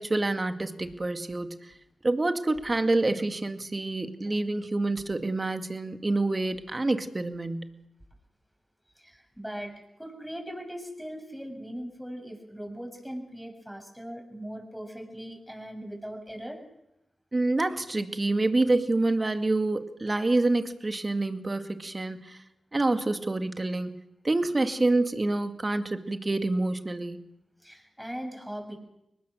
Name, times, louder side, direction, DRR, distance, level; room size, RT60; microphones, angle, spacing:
voice 1, 0.0-1.7 2.0-7.7 17.3-22.4 22.7-23.9 24.2-27.2, right 2 dB, 35° right, 7 dB, 2.1 m, -27 dB
voice 2, 9.0-16.6 27.6-28.8, equal, ahead, 4 dB, 7.2 m, -40 dB
23.0 x 19.5 x 6.4 m, 0.86 s
cardioid pair, 40°, 0 cm